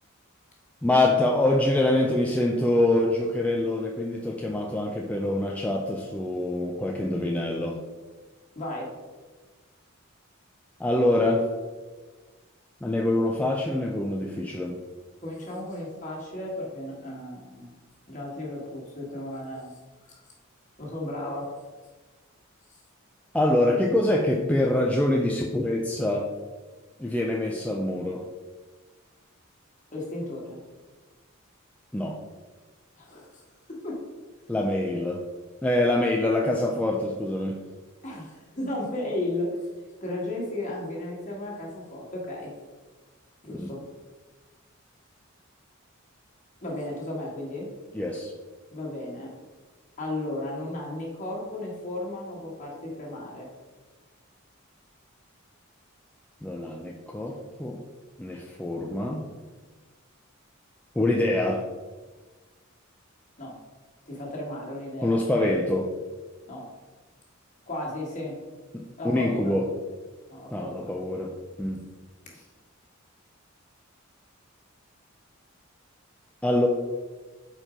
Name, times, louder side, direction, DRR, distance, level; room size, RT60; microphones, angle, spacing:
voice 1, 0.8-7.8 10.8-11.5 12.8-14.8 23.3-26.3 27.0-28.3 31.9-32.2 34.5-35.2 35.6-37.6 43.5-43.7 47.9-48.3 56.4-57.8 58.2-59.2 61.0-61.7 65.0-65.9 68.7-69.7 70.5-71.3 71.6-71.8 76.4-76.7, left 1 dB, 5° left, 0 dB, 0.4 m, -25 dB
voice 2, 8.5-8.9 15.2-17.7 18.1-19.8 20.1-20.2 20.8-21.5 29.9-30.6 33.0-33.4 33.7-34.0 34.9-35.0 38.0-39.6 40.0-42.5 43.4-43.8 46.6-47.7 48.7-49.3 50.0-53.5 63.4-63.6 64.0-65.2 66.5-66.7 67.7-68.4 69.0-69.5 70.3-71.0 72.3-72.4, left 1 dB, 35° left, -3 dB, 1.7 m, -34 dB
4.5 x 4.4 x 5.0 m, 1.3 s
head